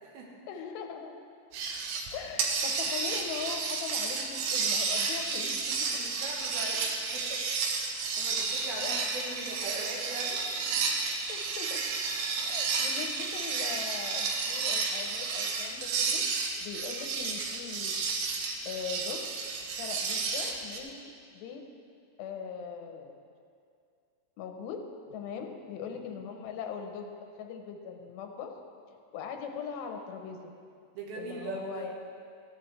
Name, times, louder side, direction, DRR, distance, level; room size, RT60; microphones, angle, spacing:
voice 1, 0.5-1.2 2.1-5.6 8.8-9.1 11.3-11.8 12.4-16.2 16.6-17.9 18.7-19.2 19.8-21.6 22.2-23.1 24.4-24.8 25.1-27.1 27.4-28.6 29.1-30.5 31.2-31.9, left 7 dB, 90° left, 4 dB, 2.9 m, -40 dB
sound 1, 1.5-2.1 2.4-20.8, right 4 dB, 90° right, 3.2 m, -32 dB
voice 2, 5.9-7.4 7.7-10.8 25.4-25.5 30.9-31.9, right 2 dB, 70° right, -2 dB, 2.8 m, -41 dB
14.0 x 11.0 x 3.2 m, 2.4 s
omnidirectional pair, 5.0 m